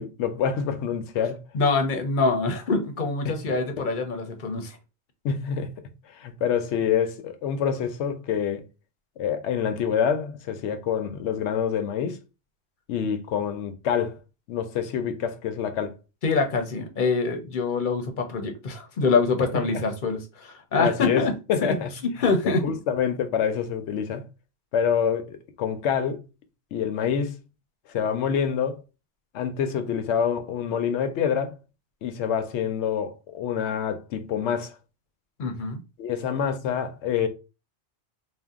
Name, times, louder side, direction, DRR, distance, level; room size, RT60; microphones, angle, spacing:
voice 1, 0.0-1.4 5.2-5.7 6.1-8.6 9.2-12.2 12.9-14.2 14.5-15.9 19.5-19.6 20.8-21.2 21.5-21.9 22.6-24.3 24.7-26.2 26.7-27.4 27.9-28.8 29.3-31.6 32.0-34.7 36.0-37.3, left 7 dB, 90° left, 0.9 m, -26 dB
voice 2, 1.5-4.8 16.2-21.3 21.6-21.7 22.2-22.6 35.4-35.8, left 4 dB, 50° left, 0.7 m, -25 dB
2.7 x 2.1 x 3.5 m
omnidirectional pair, 1.1 m